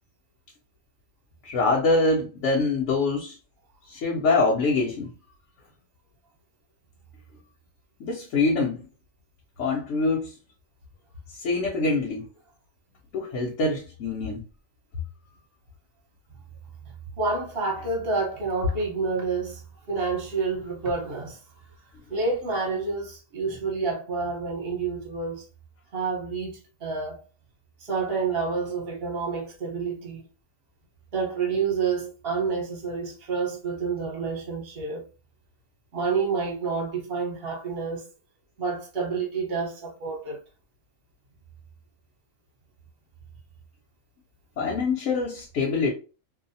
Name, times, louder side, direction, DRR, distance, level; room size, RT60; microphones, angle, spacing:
voice 1, 1.4-3.4 3.9-5.1 8.0-8.9 9.6-10.3 11.4-12.3 13.1-14.4 44.6-45.9, left 3 dB, 70° left, 1.0 m, -24 dB
voice 2, 17.2-19.6 19.9-21.4 22.1-25.4 25.9-27.2 27.8-30.3 31.1-35.0 35.9-38.0 38.6-40.4, right 4 dB, 50° right, 1.0 m, -28 dB
2.7 x 2.0 x 2.6 m
omnidirectional pair, 1.4 m